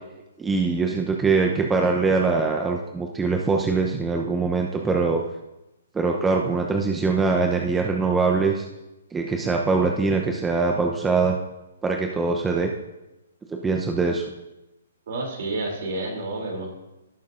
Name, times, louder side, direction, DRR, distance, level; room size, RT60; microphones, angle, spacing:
voice 1, 0.4-5.2 5.9-8.6 9.1-11.4 11.8-12.7 13.5-14.2, right 4 dB, 10° right, 1 dB, 0.8 m, -23 dB
voice 2, 15.1-16.7, right 2 dB, 55° right, 0 dB, 3.1 m, -29 dB
18.0 x 6.7 x 2.6 m, 0.97 s
figure-of-eight pair, 130°, 0 cm